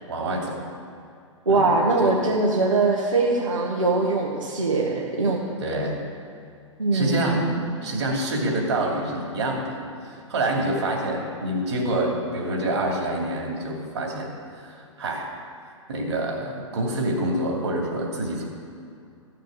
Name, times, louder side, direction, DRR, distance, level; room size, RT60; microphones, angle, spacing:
voice 1, 0.1-0.6 1.5-1.7 2.0-2.2 5.6-6.0 6.9-7.4 7.8-14.3 14.6-15.3 15.9-18.4, right 1 dB, 60° right, 0 dB, 2.7 m, -27 dB
voice 2, 1.5-5.4 6.8-7.6, right 3 dB, 80° right, -3 dB, 1.4 m, -22 dB
14.5 x 6.6 x 6.5 m, 2.5 s
figure-of-eight pair, 110°, 16 cm